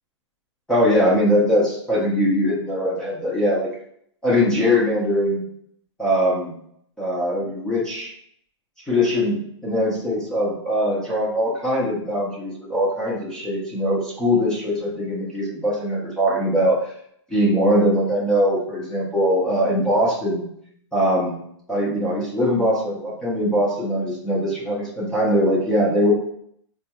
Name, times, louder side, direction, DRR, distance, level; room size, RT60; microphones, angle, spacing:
voice 1, 0.7-3.7 4.2-5.4 6.0-6.5 7.0-8.1 8.9-16.9 17.3-20.5 20.9-21.4 21.7-26.1, equal, 5° left, -7 dB, 0.6 m, -21 dB
3.8 x 2.3 x 2.9 m, 0.68 s
hypercardioid pair, 155°, 16 cm